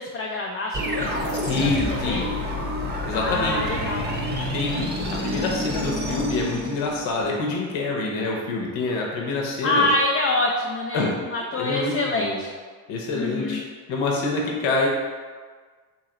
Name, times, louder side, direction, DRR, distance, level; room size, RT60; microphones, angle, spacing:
voice 1, 0.0-2.3 3.1-4.0 9.6-12.5 13.1-13.6, left 2 dB, 30° left, 0 dB, 0.4 m, -26 dB
sound 1, 0.7-7.2, equal, 25° right, 0.7 m, -28 dB
voice 2, 1.4-2.3 3.0-3.6 4.4-9.9 10.9-11.1 11.6-12.4 12.9-13.6 13.9-14.9, left 3 dB, 80° left, -1 dB, 0.8 m, -26 dB
3.0 x 2.8 x 3.8 m, 1.5 s
supercardioid pair, 65°, 46 cm